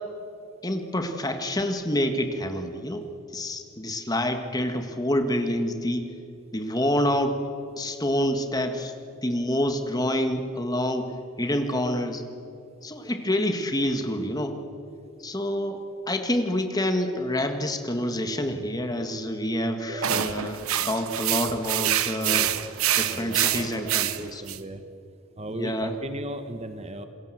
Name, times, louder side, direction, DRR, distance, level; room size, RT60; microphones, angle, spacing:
voice 1, 0.6-3.1 3.3-6.1 6.5-7.4 7.8-8.9 9.2-11.1 11.4-12.2 12.8-14.6 15.2-15.8 16.1-22.5 23.0-24.4 25.5-25.9, left 1 dB, 20° left, 6 dB, 1.8 m, -27 dB
voice 2, 19.9-20.3 21.5-21.9 22.2-22.5 22.9-23.9 24.2-24.8 25.4-27.1, right 1 dB, 30° right, 9 dB, 1.1 m, -37 dB
sound 1, 20.0-24.6, right 11 dB, 85° right, 1.0 m, -26 dB
27.5 x 21.5 x 7.9 m, 2.6 s
head